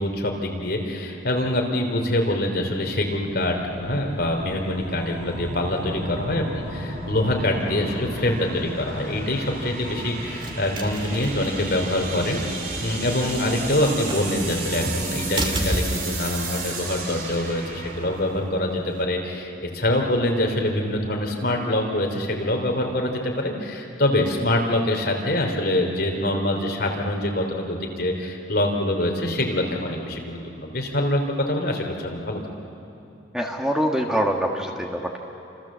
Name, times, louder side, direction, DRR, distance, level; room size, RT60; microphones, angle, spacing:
voice 1, 0.0-12.4 12.8-32.4, left 1 dB, 55° left, 1 dB, 3.4 m, -25 dB
sound 1, 2.8-15.3, equal, 85° right, 7.8 m, -37 dB
sound 2, 3.8-19.2, right 4 dB, 50° right, 3.2 m, -36 dB
sound 3, 9.4-19.0, right 1 dB, 25° right, 2.2 m, -34 dB
voice 2, 33.3-35.2, equal, 5° right, 1 dB, 1.5 m, -24 dB
29.0 x 27.0 x 7.5 m, 2.8 s
head